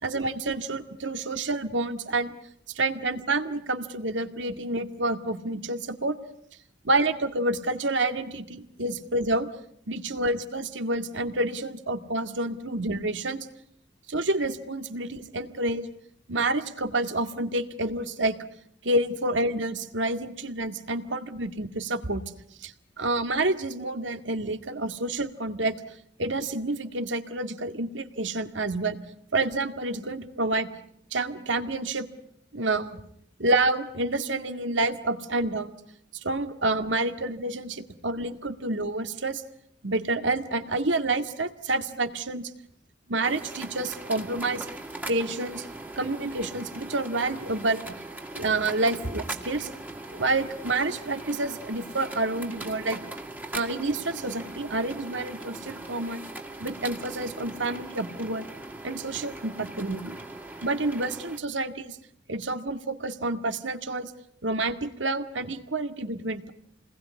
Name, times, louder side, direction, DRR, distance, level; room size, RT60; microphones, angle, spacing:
voice 1, 0.0-2.3 2.7-6.2 6.8-9.5 9.9-13.5 14.1-15.9 16.3-18.4 18.8-22.2 22.6-25.8 26.2-29.0 29.3-30.7 31.1-32.1 32.5-33.0 33.4-35.7 36.2-39.4 39.8-42.5 43.1-44.7 45.1-45.7 46.0-47.8 48.3-49.7 50.1-53.0 53.5-56.2 56.6-58.5 58.8-60.2 60.6-62.0 62.3-64.1 64.4-66.5, right 2 dB, 75° right, 8 dB, 2.1 m, -28 dB
sound 1, 43.2-61.4, right 2 dB, 10° right, 2.0 m, -40 dB
30.0 x 20.5 x 9.6 m, 0.69 s
head